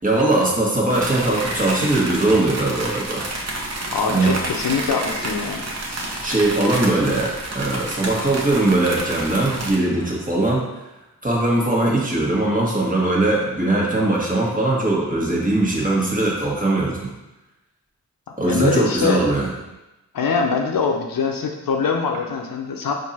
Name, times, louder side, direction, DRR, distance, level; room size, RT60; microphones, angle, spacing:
voice 1, 0.0-3.3 4.1-4.4 6.2-10.6 11.2-17.1 18.4-19.5, right 2 dB, 25° right, -4 dB, 1.4 m, -20 dB
sound 1, 0.9-9.8, right 1 dB, 50° right, 0.9 m, -29 dB
voice 2, 3.9-5.6 18.4-19.2 20.1-22.9, left 5 dB, 75° left, 2 dB, 0.7 m, -23 dB
4.6 x 2.6 x 4.2 m, 0.97 s
cardioid pair, 50°, 34 cm